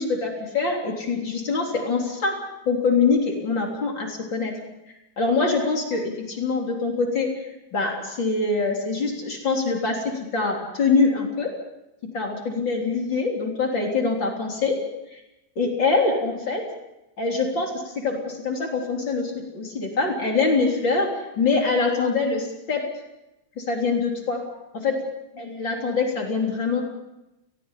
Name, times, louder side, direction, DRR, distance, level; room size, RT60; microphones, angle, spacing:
voice 1, 0.0-2.4 2.7-4.5 5.2-7.4 7.7-11.5 12.1-14.8 15.1-15.2 15.6-16.6 17.2-22.9 23.6-24.5 24.7-25.0 25.4-26.8, left 4 dB, 65° left, 1 dB, 4.4 m, -24 dB
28.5 x 20.5 x 5.7 m, 0.94 s
omnidirectional pair, 2.2 m